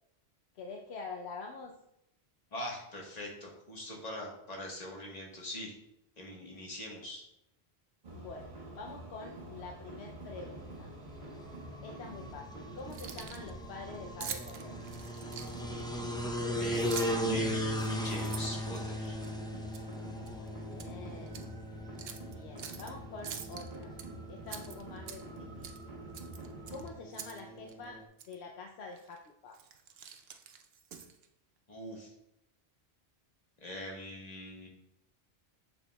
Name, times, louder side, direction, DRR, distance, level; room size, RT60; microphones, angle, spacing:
voice 1, 0.5-1.7 8.1-10.9 11.8-14.7 20.3-21.5 22.3-23.9 24.3-25.9 26.7-28.0 28.3-29.6, left 4 dB, 80° left, 2 dB, 0.9 m, -46 dB
voice 2, 2.5-5.7 6.2-7.2 16.6-19.2 31.7-32.1 33.6-34.7, left 1 dB, 40° left, -1 dB, 1.4 m, -42 dB
sound 1, 8.0-26.9, right 2 dB, 50° right, 1.3 m, -47 dB
sound 2, 10.0-28.0, equal, 5° left, 0.3 m, -39 dB
Keys jangling, 12.8-13.5 14.2-15.8 16.6-17.3 17.7-19.3 19.7-19.9 20.3-20.9 21.3-21.4 22.0-22.9 23.2-24.1 24.5-25.4 25.6-25.8 26.1-27.4 27.7-27.8 28.2-28.4 29.0-29.2 29.5-31.3, right 8 dB, 70° right, 0.8 m, -45 dB
7.0 x 6.7 x 2.2 m, 0.83 s
omnidirectional pair, 1.1 m